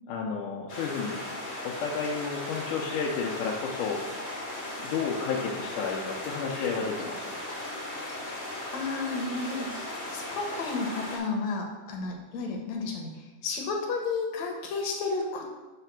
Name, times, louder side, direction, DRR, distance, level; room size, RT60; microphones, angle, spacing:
voice 1, 0.1-1.2 1.6-4.0 4.8-7.2, left 5 dB, 85° left, -2 dB, 2.3 m, -31 dB
sound 1, 0.7-11.2, left 1 dB, 45° left, 0.8 m, -37 dB
voice 2, 8.5-15.4, left 4 dB, 70° left, 2 dB, 1.9 m, -32 dB
8.0 x 3.3 x 5.8 m, 1.2 s
omnidirectional pair, 3.6 m